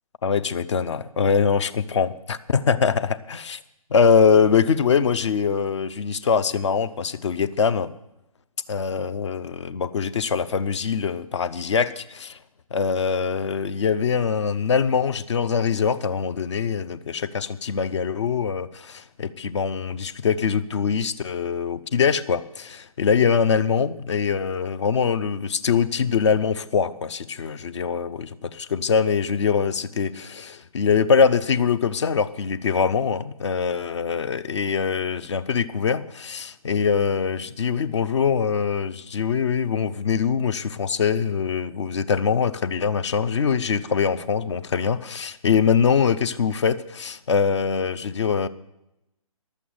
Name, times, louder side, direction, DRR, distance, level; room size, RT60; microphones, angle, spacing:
voice 1, 0.2-3.6 3.9-7.9 8.7-12.4 12.7-48.5, left 6 dB, 50° left, 15 dB, 0.8 m, -23 dB
12.0 x 8.4 x 9.4 m, 0.88 s
figure-of-eight pair, 140°, 19 cm